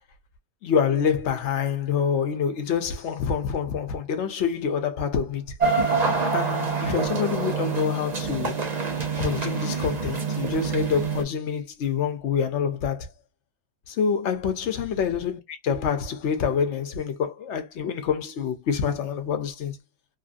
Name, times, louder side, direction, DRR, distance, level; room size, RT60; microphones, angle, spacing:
voice 1, 0.6-5.5 6.3-8.6 9.2-13.1 13.9-19.8, left 7 dB, 60° left, 0.8 m, -26 dB
sound 1, 5.6-11.2, right 4 dB, 35° right, 0.8 m, -26 dB
3.1 x 2.5 x 2.5 m
omnidirectional pair, 1.7 m